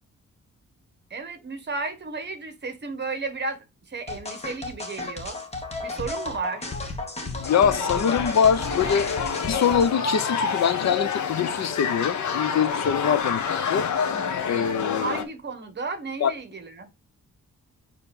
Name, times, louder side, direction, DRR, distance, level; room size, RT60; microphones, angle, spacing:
voice 1, 1.1-5.4 5.8-6.7 15.0-16.9, right 4 dB, 35° right, 1.3 m, -33 dB
sound 1, 4.1-9.9, left 2 dB, 20° left, 1.2 m, -33 dB
voice 2, 7.2-9.1 9.4-13.9 14.4-15.2 16.2-16.3, left 7 dB, 65° left, 0.7 m, -24 dB
sound 2, 7.4-15.2, left 6 dB, 85° left, 1.1 m, -28 dB
6.8 x 3.1 x 5.3 m
wide cardioid pair, 175°, 29 cm